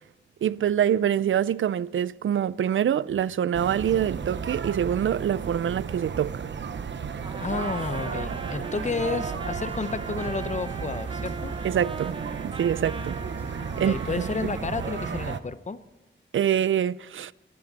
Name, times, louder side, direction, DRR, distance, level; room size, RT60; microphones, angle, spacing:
voice 1, 0.4-6.5 11.6-12.2 12.4-13.2 13.8-14.3 16.3-17.3, right 9 dB, 80° right, 0.5 m, -25 dB
sound 1, 3.5-15.4, right 6 dB, 65° right, 1.0 m, -34 dB
sound 2, 6.9-14.3, right 1 dB, 10° right, 5.0 m, -52 dB
Trumpet, 7.2-15.4, right 4 dB, 25° right, 0.7 m, -40 dB
voice 2, 7.4-11.5 13.8-15.8, left 4 dB, 35° left, 0.8 m, -31 dB
24.0 x 13.5 x 4.2 m
wide cardioid pair, 145°, 20 cm